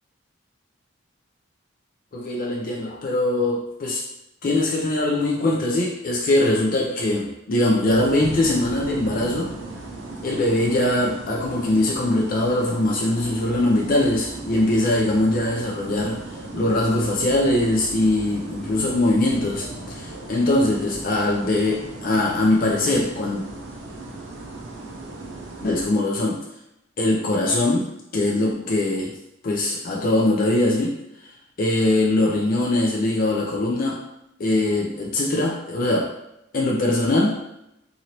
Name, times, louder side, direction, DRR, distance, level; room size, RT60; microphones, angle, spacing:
voice 1, 2.1-4.0 4.4-9.5 10.2-23.4 25.6-26.4 27.0-27.9 28.1-29.2 29.4-31.0 31.6-34.0 34.4-36.1 36.5-37.4, left 1 dB, 45° left, -3 dB, 0.4 m, -22 dB
sound 1, 7.8-25.9, right 2 dB, 65° right, 0.5 m, -37 dB
2.9 x 2.6 x 2.8 m, 0.85 s
head